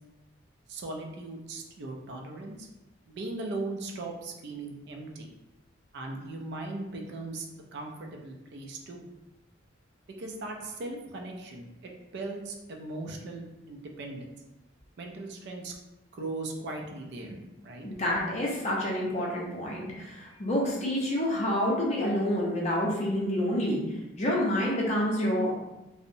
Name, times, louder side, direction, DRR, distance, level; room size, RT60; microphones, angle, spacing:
voice 1, 0.7-2.7 3.1-5.3 5.9-7.5 7.7-9.1 10.1-14.4 15.0-15.7 16.1-17.9, right 2 dB, 55° right, 1 dB, 0.4 m, -38 dB
voice 2, 17.8-23.8 24.2-25.6, left 1 dB, 35° left, -3 dB, 0.5 m, -28 dB
2.7 x 2.0 x 2.5 m, 0.99 s
head